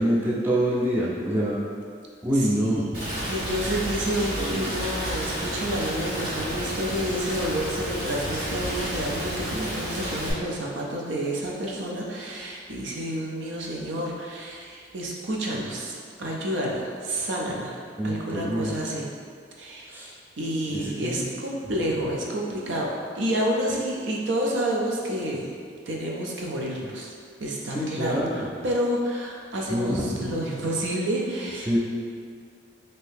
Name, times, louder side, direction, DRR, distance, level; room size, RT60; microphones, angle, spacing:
voice 1, 0.0-1.6 2.2-3.2 18.0-18.7 19.9-20.1 20.7-21.2 27.7-28.4 29.7-30.3 31.7-31.8, equal, 10° right, -6 dB, 0.4 m, -26 dB
voice 2, 2.3-15.9 16.2-17.8 18.0-19.1 19.6-19.9 20.4-25.5 25.9-27.1 27.4-31.7, right 1 dB, 85° right, -2 dB, 0.5 m, -29 dB
Rain, 2.9-10.3, equal, 55° right, 1.1 m, -31 dB
2.7 x 2.6 x 3.4 m, 2.1 s
head